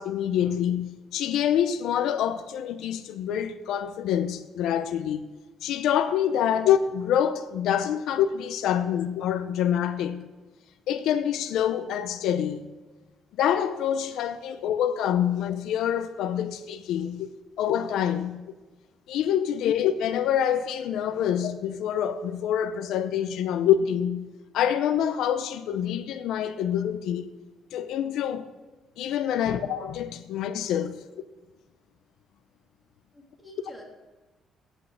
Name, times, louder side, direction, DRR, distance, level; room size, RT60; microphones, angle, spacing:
voice 1, 0.0-5.3 5.6-10.2 10.9-12.7 13.4-17.3 17.6-18.4 19.1-24.3 24.5-27.3 27.7-28.5 29.0-31.0, left 9 dB, 85° left, 0.6 m, -26 dB
voice 2, 33.1-33.8, left 1 dB, 10° left, 2.9 m, -49 dB
8.4 x 8.1 x 6.5 m
cardioid pair, 115°, 0 cm